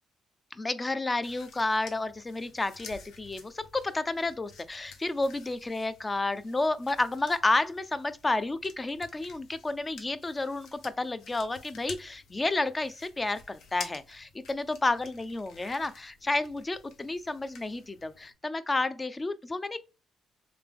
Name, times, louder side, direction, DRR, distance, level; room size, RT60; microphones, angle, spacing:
voice 1, 0.5-19.8, left 2 dB, 20° left, 0.4 m, -31 dB
sound 1, 1.2-18.3, left 5 dB, 80° left, 0.8 m, -51 dB
3.3 x 2.9 x 3.5 m
cardioid pair, 90°, 0 cm